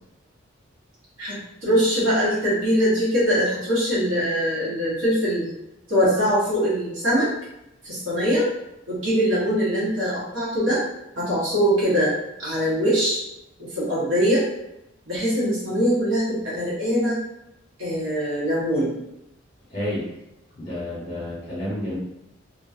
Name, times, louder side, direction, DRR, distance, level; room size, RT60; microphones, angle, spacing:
voice 1, 1.2-5.5 5.9-7.3 7.8-8.5 8.9-10.8 11.2-12.1 12.4-13.2 13.7-14.5 15.1-17.2 17.8-19.0, equal, 80° right, -9 dB, 1.0 m, -22 dB
voice 2, 19.7-20.1 20.5-22.0, left 1 dB, 35° left, -9 dB, 1.1 m, -30 dB
2.7 x 2.4 x 2.6 m, 0.85 s
head